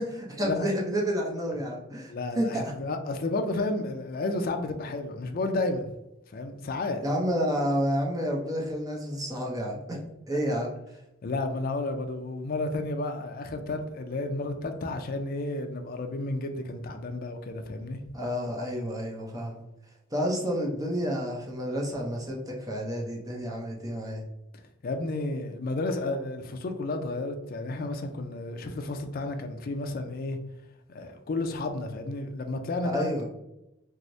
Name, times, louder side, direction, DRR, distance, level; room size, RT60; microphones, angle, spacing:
voice 1, 0.0-2.6 7.0-10.0 10.3-10.8 18.1-19.6 20.1-24.2 32.8-33.3, equal, 20° right, 0.6 m, -30 dB
voice 2, 2.1-5.9 6.3-7.0 11.2-18.0 24.8-30.4 30.9-33.1, left 2 dB, 50° left, 0.4 m, -32 dB
4.5 x 2.0 x 2.6 m
head